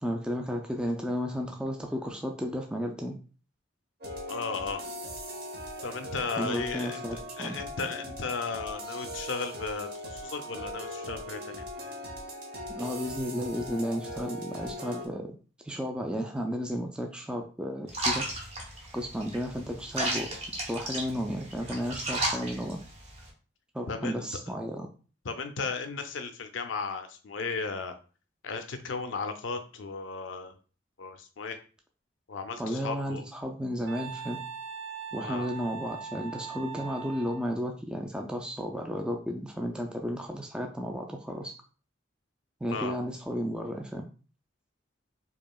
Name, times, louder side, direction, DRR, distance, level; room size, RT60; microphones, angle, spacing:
voice 1, 0.0-3.2 6.4-7.6 12.7-15.4 15.6-18.3 18.9-22.8 23.7-24.9 32.6-34.4 35.1-41.5 42.6-44.1, equal, 5° right, 2 dB, 0.3 m, -33 dB
sound 1, 4.0-15.1, left 1 dB, 55° right, 0.9 m, -39 dB
voice 2, 4.3-4.8 5.8-11.6 23.9-24.2 25.2-28.0 28.4-30.5 31.0-31.6 32.3-33.2 35.2-35.5 42.7-43.0, left 4 dB, 85° left, 7 dB, 0.5 m, -35 dB
sound 2, 17.9-23.3, right 1 dB, 30° right, 1.0 m, -34 dB
Wind instrument woodwind instrument, 33.9-37.5, right 6 dB, 85° right, 0.4 m, -40 dB
4.7 x 2.8 x 2.3 m, 0.37 s
head